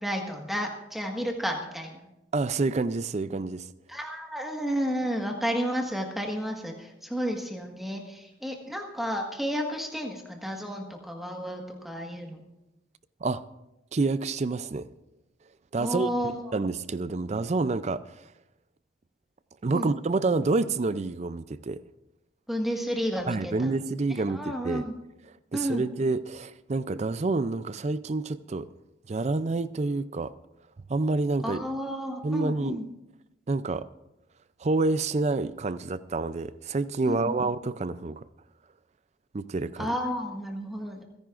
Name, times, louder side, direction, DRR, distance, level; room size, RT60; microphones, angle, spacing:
voice 1, 0.0-2.0 3.9-12.4 15.8-16.5 19.7-19.9 22.5-23.8 24.3-24.9 25.5-25.8 31.4-32.9 37.0-37.5 39.8-41.0, equal, ahead, 1 dB, 1.5 m, -32 dB
voice 2, 2.3-3.7 13.2-13.4 13.9-14.9 15.7-18.0 19.6-21.8 23.3-24.8 25.5-28.7 29.1-30.3 30.9-31.6 32.2-32.8 33.5-33.9 34.6-38.3 39.3-39.9, right 3 dB, 35° right, 15 dB, 0.4 m, -28 dB
28.5 x 10.5 x 2.5 m, 0.94 s
head